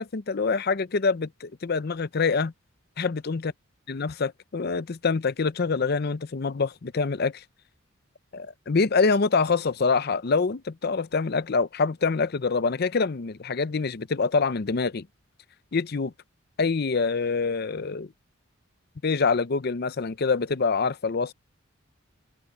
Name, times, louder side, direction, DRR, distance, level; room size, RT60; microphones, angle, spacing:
voice 1, 0.0-2.5 3.0-3.5 3.9-7.4 8.3-15.1 15.7-16.1 16.6-18.1 19.0-21.3, left 4 dB, 50° left, 0.6 m, -25 dB
open air
head